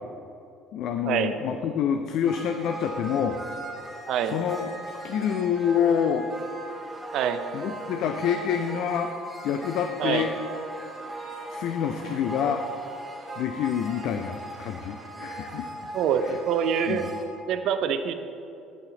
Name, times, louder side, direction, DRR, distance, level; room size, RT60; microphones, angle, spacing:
voice 1, 0.7-3.4 4.3-6.3 7.5-9.1 9.4-10.3 11.5-12.6 13.4-15.7 16.2-16.4 16.9-17.1, left 8 dB, 60° left, 6 dB, 0.4 m, -27 dB
sound 1, 2.3-17.2, right 1 dB, 10° right, 2.2 m, -38 dB
voice 2, 15.9-17.0 17.5-18.1, right 8 dB, 60° right, 9 dB, 0.5 m, -25 dB
8.6 x 8.1 x 3.8 m, 2.7 s
figure-of-eight pair, 60°, 0 cm